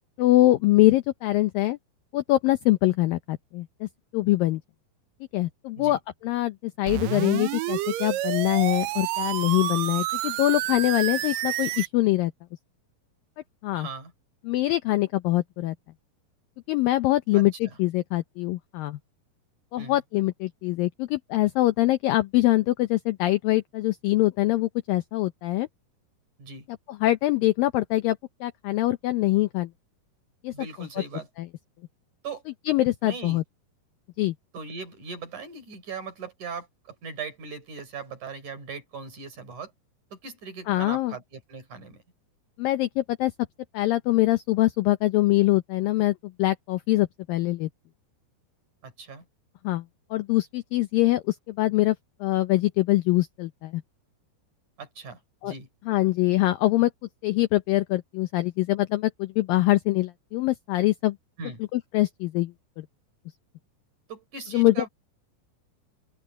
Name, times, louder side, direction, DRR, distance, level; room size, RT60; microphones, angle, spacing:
voice 1, 0.2-1.8 2.1-3.9 4.1-4.6 5.3-12.3 13.6-13.9 14.5-15.8 16.7-19.0 19.7-25.7 27.0-29.7 30.4-30.5 30.8-30.9 31.4-31.5 32.7-33.4 34.2-34.3 40.7-41.1 42.6-43.3 43.7-47.7 49.6-49.8 50.1-52.0 52.2-53.8 55.4-55.5 55.9-56.9 57.2-61.2 61.7-62.9 64.5-64.9, left 17 dB, 80° left, 2.1 m, -24 dB
sound 1, 6.9-11.9, right 15 dB, 80° right, 2.0 m, -29 dB
voice 2, 13.7-14.1 17.3-17.8 19.8-20.0 26.4-26.7 30.5-31.3 32.2-32.4 33.0-33.4 34.5-39.7 40.1-42.0 48.8-49.2 54.8-55.7 61.4-61.6 64.1-64.9, right 5 dB, 45° right, 6.1 m, -39 dB
open air
omnidirectional pair, 4.8 m